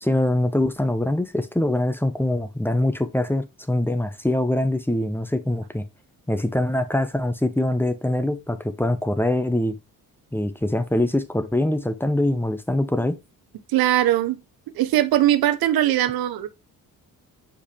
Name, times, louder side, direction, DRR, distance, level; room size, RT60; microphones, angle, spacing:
voice 1, 0.0-5.8 6.3-9.8 10.3-13.2, left 1 dB, 5° left, 1.0 m, -23 dB
voice 2, 13.7-14.4 14.8-16.5, right 13 dB, 85° right, 0.9 m, -20 dB
6.5 x 5.5 x 3.3 m
cardioid pair, 80°, 35 cm